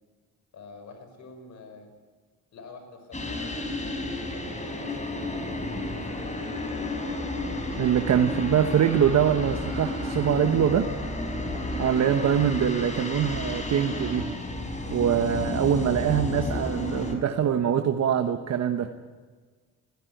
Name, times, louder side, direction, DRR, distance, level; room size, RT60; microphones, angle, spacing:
voice 1, 0.5-1.9 2.5-6.9 8.1-8.6 10.8-11.1 12.3-12.6 15.6-16.0, left 4 dB, 70° left, 7 dB, 5.2 m, -47 dB
sound 1, 3.1-17.1, left 2 dB, 25° left, 4.7 m, -32 dB
sound 2, 7.2-15.1, right 3 dB, 20° right, 7.5 m, -41 dB
voice 2, 7.8-10.9 11.8-14.3 14.9-18.9, right 8 dB, 60° right, 7 dB, 1.2 m, -23 dB
20.5 x 16.5 x 9.3 m, 1.5 s
cardioid pair, 90°, 30 cm